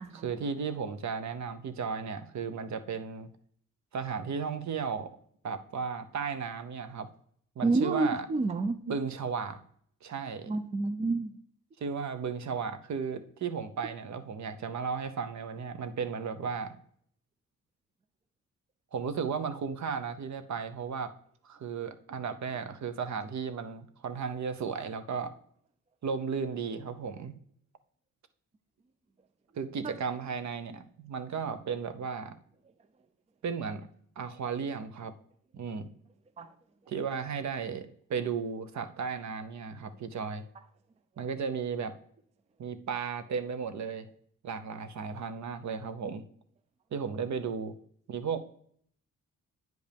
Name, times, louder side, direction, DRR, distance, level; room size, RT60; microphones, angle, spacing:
voice 1, 0.1-3.3 3.9-5.1 5.4-7.1 7.6-8.3 8.9-9.6 10.0-10.5 11.8-16.8 18.9-21.1 21.4-25.4 26.0-27.3 29.5-32.4 33.4-33.9 34.2-35.1 35.5-35.9 36.9-40.4 41.2-41.9 42.6-44.1 44.4-46.2 46.9-47.7 48.1-48.5, right 6 dB, 55° right, 10 dB, 0.8 m, -35 dB
voice 2, 7.6-8.8 10.5-11.4 29.8-29.9 36.4-36.5, right 3 dB, 20° right, 11 dB, 0.3 m, -29 dB
9.3 x 5.2 x 3.4 m, 0.62 s
cardioid pair, 115°, 34 cm